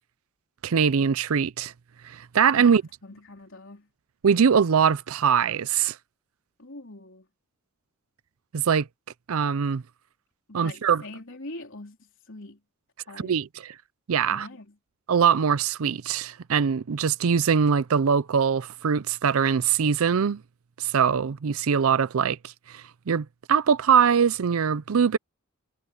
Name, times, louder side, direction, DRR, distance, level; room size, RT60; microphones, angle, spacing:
voice 1, 0.6-1.7 2.0-2.8 4.2-6.0 8.5-8.9 9.3-9.8 10.5-11.0 13.2-13.7 14.1-14.5 15.1-20.4 20.8-25.2, right 7 dB, 75° right, 0.5 m, -22 dB
voice 2, 2.5-3.9 6.6-7.3 10.5-12.6 13.1-13.4 14.3-14.8, left 2 dB, 60° left, 4.0 m, -43 dB
head